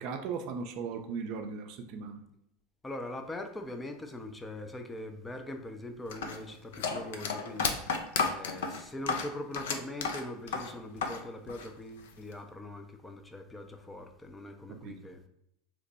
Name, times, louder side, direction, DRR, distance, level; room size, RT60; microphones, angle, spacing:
voice 1, 0.0-2.2 14.7-15.0, right 5 dB, 55° right, 6 dB, 0.4 m, -38 dB
voice 2, 2.8-7.8 8.2-15.2, left 1 dB, 15° left, 5 dB, 0.4 m, -42 dB
sound 1, 6.1-11.2 11.5-12.3, left 5 dB, 75° left, 0.4 m, -33 dB
2.9 x 2.1 x 4.0 m, 0.79 s
hypercardioid pair, 90°, 0 cm